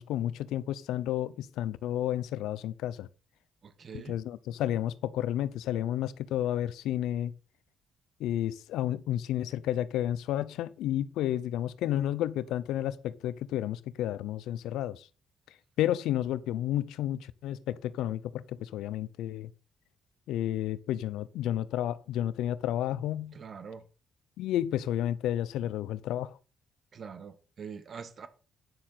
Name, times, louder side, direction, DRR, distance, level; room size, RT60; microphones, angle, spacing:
voice 1, 0.0-3.1 4.1-7.3 8.2-15.1 15.8-19.5 20.3-23.4 24.4-26.4, left 12 dB, 90° left, 0.6 m, -31 dB
voice 2, 3.6-4.2 23.3-23.8 26.9-28.3, right 6 dB, 50° right, 1.5 m, -44 dB
9.6 x 6.7 x 5.8 m
cardioid pair, 90°, 0 cm